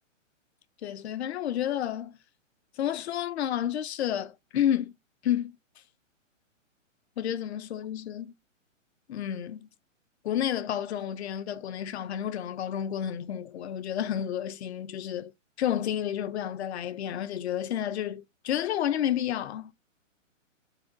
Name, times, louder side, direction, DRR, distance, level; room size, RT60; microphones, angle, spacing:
voice 1, 0.8-2.2 2.8-5.0 5.2-5.5 7.2-8.3 9.1-9.7 10.2-15.3 15.6-19.7, left 10 dB, 55° left, 0.6 m, -30 dB
4.1 x 2.1 x 2.6 m
hypercardioid pair, 150°, 39 cm